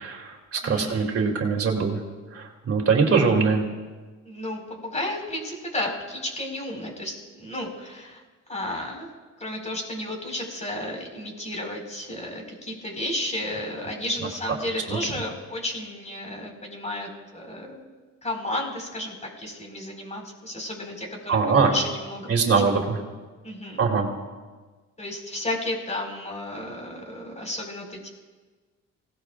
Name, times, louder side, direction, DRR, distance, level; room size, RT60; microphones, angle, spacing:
voice 1, 0.0-2.0 2.3-3.6 14.9-15.0 21.3-21.7 22.3-23.0 23.8-24.1, right 5 dB, 50° right, 1 dB, 3.0 m, -22 dB
voice 2, 0.6-1.1 4.2-8.2 8.5-9.1 9.4-17.8 18.2-22.3 23.4-23.8 25.0-28.1, left 1 dB, 25° left, 1 dB, 5.1 m, -32 dB
25.5 x 18.5 x 2.5 m, 1.3 s
cardioid pair, 90°, 30 cm